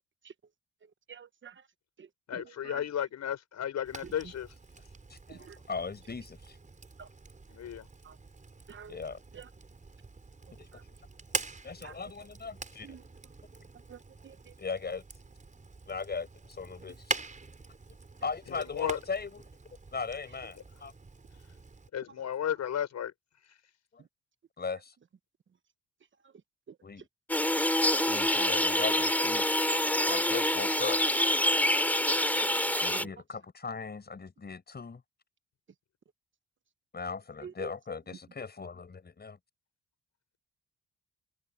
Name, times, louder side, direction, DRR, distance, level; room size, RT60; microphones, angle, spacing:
voice 1, 1.1-1.5 2.0-2.1 2.3-2.8 5.3-5.6 7.0-7.1 8.0-8.2 8.7-9.0 9.3-9.4 10.7-10.8 11.8-11.9 12.8-13.0 13.9-14.5 32.3-32.6 32.9-33.1 37.4-37.7, right 7 dB, 40° right, 1.1 m, -47 dB
voice 2, 2.3-4.5 7.5-7.9 18.5-19.0 21.9-23.1, left 9 dB, 65° left, 6.0 m, -34 dB
Fire, 3.8-21.9, right 3 dB, 25° right, 5.0 m, -44 dB
voice 3, 5.1-6.6 8.9-9.2 10.6-10.8 11.6-12.9 14.6-15.0 15.9-17.2 18.2-19.4 19.9-20.9 23.9-24.0 24.6-24.9 26.8-27.1 27.9-29.5 30.1-31.0 32.8-35.0 36.9-39.4, left 5 dB, 35° left, 6.3 m, -38 dB
sound 1, 27.3-33.0, left 1 dB, 5° left, 4.0 m, -26 dB
cardioid pair, 90°, 30 cm